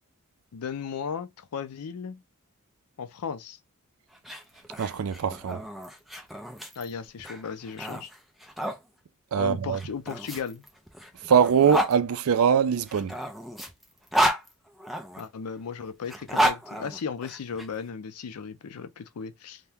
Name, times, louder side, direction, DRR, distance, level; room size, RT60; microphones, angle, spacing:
voice 1, 0.5-2.2 3.0-3.6 6.8-8.1 9.4-10.7 15.2-19.6, left 6 dB, 90° left, 0.5 m, -36 dB
sound 1, 4.1-8.8 9.7-11.9 12.9-15.2 16.0-17.7, right 1 dB, ahead, 0.5 m, -30 dB
voice 2, 4.8-5.6 9.3-9.8 11.3-13.1, right 7 dB, 70° right, 0.4 m, -22 dB
2.8 x 2.1 x 3.4 m
head